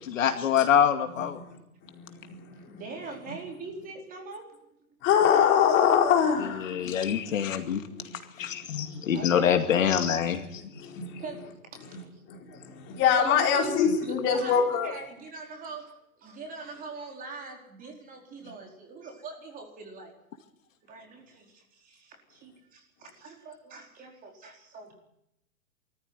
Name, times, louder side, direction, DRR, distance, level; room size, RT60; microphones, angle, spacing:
voice 1, 0.0-1.4 6.6-7.8 8.4-10.4, left 8 dB, 60° left, 6 dB, 2.3 m, -25 dB
voice 2, 1.9-2.8 5.0-7.2 7.7-9.0 10.2-10.5 10.8-11.2 12.3-14.9, left 8 dB, 25° left, 1 dB, 4.7 m, -25 dB
voice 3, 2.7-4.4 9.1-9.9 10.7-10.8 11.1-11.5 12.0-12.2 12.5-12.6 13.2-13.7 14.0-20.1 20.8-24.9, right 3 dB, 20° right, 1 dB, 4.6 m, -42 dB
23.5 x 14.5 x 9.6 m, 0.82 s
hypercardioid pair, 140°, 43 cm